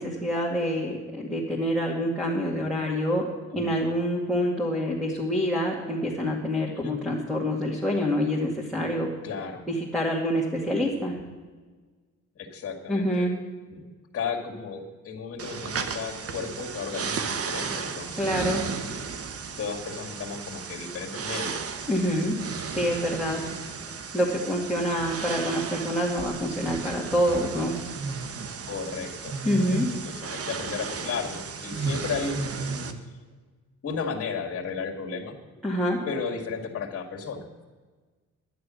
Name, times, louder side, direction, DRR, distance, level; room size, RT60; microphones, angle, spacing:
voice 1, 0.0-3.3 3.5-9.1 9.7-11.2 12.9-13.3 18.2-18.6 21.9-22.4 22.7-23.4 24.1-27.8 29.4-29.9 35.6-36.0, equal, ahead, -3 dB, 2.2 m, -26 dB
voice 2, 9.2-9.7 12.4-13.3 13.7-13.9 14.1-18.4 19.6-21.7 28.7-33.0 33.8-35.4 36.1-37.5, left 5 dB, 50° left, 0 dB, 2.0 m, -34 dB
sound 1, 15.4-32.9, right 5 dB, 50° right, 1.1 m, -34 dB
11.5 x 10.5 x 6.3 m, 1.4 s
cardioid pair, 90°, 30 cm